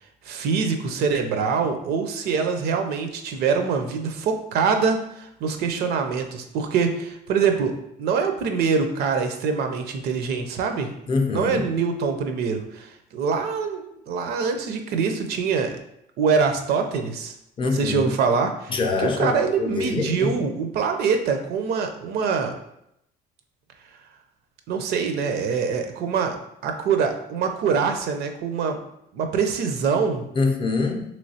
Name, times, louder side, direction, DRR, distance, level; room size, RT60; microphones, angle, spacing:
voice 1, 0.3-10.9 11.3-12.9 13.1-15.7 16.2-17.3 17.6-18.7 19.2-22.5 24.7-26.4 26.6-28.8 29.1-30.2, right 5 dB, 70° right, 6 dB, 0.5 m, -24 dB
voice 2, 11.1-11.7 17.6-18.1 18.7-20.3 30.3-31.0, left 3 dB, 30° left, 3 dB, 0.4 m, -24 dB
3.1 x 3.1 x 2.7 m, 0.79 s
cardioid pair, 110°, 17 cm